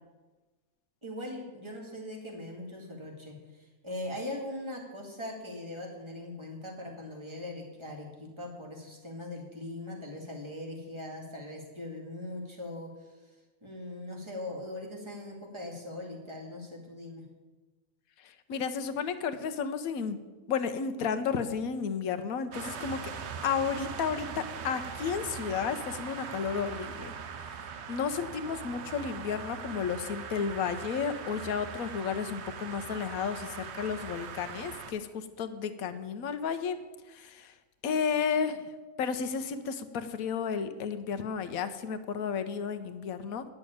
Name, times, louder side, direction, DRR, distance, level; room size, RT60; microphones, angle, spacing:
voice 1, 1.0-13.1 13.6-17.3, left 1 dB, 20° right, -1 dB, 2.2 m, -40 dB
voice 2, 18.2-20.2 20.5-23.0 23.4-27.1 27.9-36.8 37.1-37.5 37.8-38.7 39.0-43.5, left 6 dB, 85° left, 10 dB, 1.2 m, -32 dB
sound 1, 22.5-34.9, right 6 dB, 60° right, 1.0 m, -41 dB
10.5 x 6.5 x 8.7 m, 1.2 s
omnidirectional pair, 1.5 m